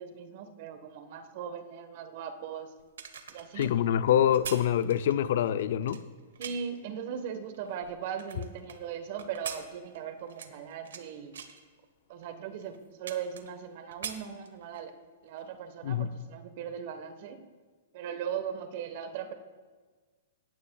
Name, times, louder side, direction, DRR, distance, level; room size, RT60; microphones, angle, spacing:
voice 1, 0.0-2.7 3.3-3.7 6.4-11.4 12.1-14.9 15.2-17.4 17.9-19.3, right 7 dB, 55° right, 1.2 m, -39 dB
sound 1, 2.8-6.8 7.4-8.8 9.2-11.0 11.3-11.6 12.2-12.3 12.6-13.7 13.9-14.9 15.3-15.4, right 7 dB, 90° right, 1.1 m, -43 dB
voice 2, 3.6-6.0 15.8-16.1, left 10 dB, 65° left, 0.5 m, -25 dB
18.0 x 13.5 x 2.3 m
hypercardioid pair, 140°, 0 cm